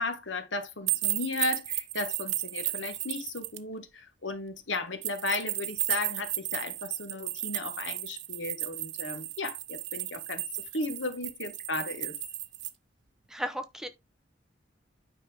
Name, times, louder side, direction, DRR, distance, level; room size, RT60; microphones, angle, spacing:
voice 1, 0.0-10.4 10.7-12.1, left 2 dB, 80° left, 1.5 m, -35 dB
sound 1, 0.9-3.6 5.0-12.7, right 15 dB, 75° right, 0.9 m, -34 dB
voice 2, 13.3-13.9, equal, 5° right, 0.7 m, -34 dB
9.4 x 5.4 x 3.5 m
head